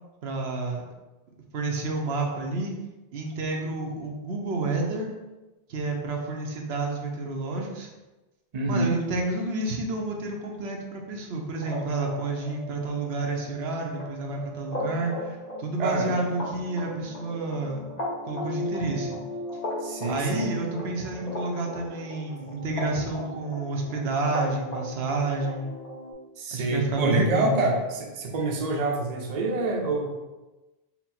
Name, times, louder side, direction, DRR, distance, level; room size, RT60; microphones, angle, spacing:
voice 1, 0.2-0.8 1.5-2.7 3.1-5.1 5.7-7.9 8.6-17.9 18.2-19.2 20.0-25.7 26.5-27.7, right 2 dB, 85° right, 1 dB, 0.9 m, -30 dB
voice 2, 8.5-8.9 15.8-16.3 19.8-20.5 26.4-30.1, right 2 dB, 45° right, 1 dB, 0.6 m, -27 dB
sound 1, 11.5-26.1, left 1 dB, 45° left, 1.0 m, -36 dB
4.3 x 2.1 x 4.1 m, 1.1 s
omnidirectional pair, 1.0 m